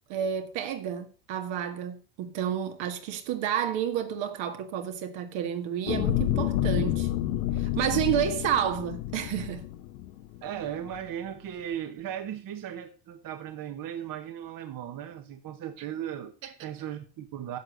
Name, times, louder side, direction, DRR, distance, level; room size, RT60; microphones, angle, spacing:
voice 1, 0.1-7.1 7.5-9.7 16.4-16.7, right 9 dB, 65° right, 2.0 m, -30 dB
sound 1, 5.9-10.4 10.9-11.0, left 13 dB, 90° left, 1.0 m, -29 dB
voice 2, 10.4-16.3 16.6-17.6, right 10 dB, 45° right, 1.2 m, -37 dB
10.5 x 6.3 x 6.5 m
supercardioid pair, 110°, 48 cm